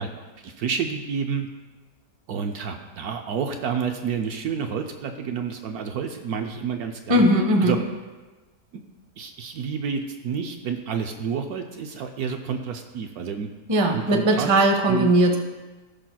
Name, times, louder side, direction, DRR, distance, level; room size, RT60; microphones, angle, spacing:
voice 1, 0.0-1.5 2.3-7.2 7.6-7.8 9.2-13.5 13.9-14.5 14.9-15.1, right 6 dB, 70° right, 4 dB, 1.0 m, -29 dB
voice 2, 7.1-7.8 13.7-15.4, right 1 dB, 30° right, 3 dB, 0.5 m, -19 dB
16.5 x 5.8 x 2.3 m, 1.2 s
omnidirectional pair, 1.8 m